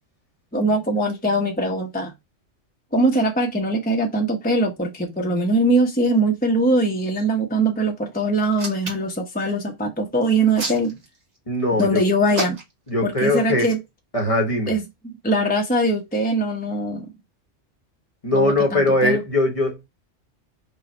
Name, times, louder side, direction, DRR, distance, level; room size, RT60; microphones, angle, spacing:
voice 1, 0.5-2.1 2.9-11.0 11.8-12.6 13.0-13.8 14.7-17.1 18.3-19.2, right 1 dB, 10° left, 0.9 m, -22 dB
Hands, 8.4-9.2 10.2-11.4 12.3-12.9 13.5-13.7, right 2 dB, 55° right, 1.9 m, -30 dB
voice 2, 11.5-12.0 12.9-13.7 14.1-14.7 18.2-19.9, left 1 dB, 30° left, 1.1 m, -20 dB
5.0 x 2.4 x 4.4 m
omnidirectional pair, 1.2 m